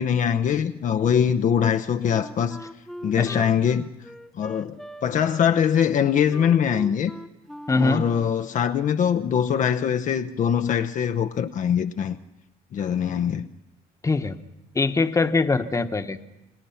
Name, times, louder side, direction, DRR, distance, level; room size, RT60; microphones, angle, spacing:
voice 1, 0.0-2.6 3.0-3.9 4.4-7.1 7.7-12.2 12.7-13.5, left 8 dB, 50° left, 0.9 m, -22 dB
Wind instrument woodwind instrument, 2.1-8.4, equal, ahead, 1.0 m, -41 dB
voice 2, 7.7-8.0 14.0-14.4 14.7-16.3, left 3 dB, 20° left, 1.3 m, -23 dB
29.0 x 19.5 x 5.8 m
cardioid pair, 110°, 17 cm